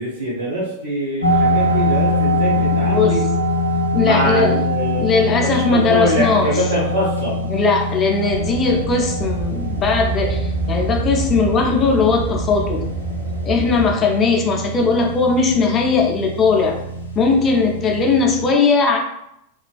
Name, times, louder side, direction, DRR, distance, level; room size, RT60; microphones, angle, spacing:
voice 1, 0.0-3.2 4.0-7.4, equal, 85° right, -8 dB, 0.7 m, -23 dB
sound 1, 1.2-18.4, equal, 85° left, 0.4 m, -23 dB
voice 2, 2.6-3.2 3.9-4.6 5.0-6.5 7.5-12.9 13.4-16.7 17.2-19.0, left 4 dB, 25° left, 1 dB, 0.4 m, -18 dB
sound 2, 8.3-13.9, right 3 dB, 45° right, 0.8 m, -27 dB
2.3 x 2.3 x 2.3 m, 0.80 s
figure-of-eight pair, 90°, 0 cm